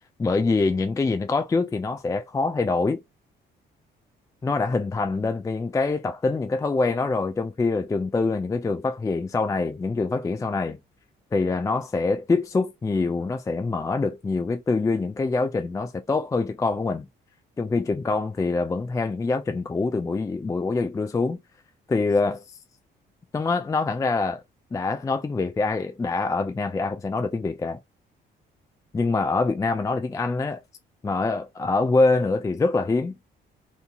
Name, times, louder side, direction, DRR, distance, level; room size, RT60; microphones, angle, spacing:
voice 1, 0.2-3.0 4.4-10.8 11.3-17.1 17.6-21.4 21.9-22.4 23.3-24.4 24.7-27.8 28.9-30.6 31.0-33.1, left 3 dB, 15° left, 0.3 m, -25 dB
2.8 x 2.7 x 2.3 m
cardioid pair, 90°, 20 cm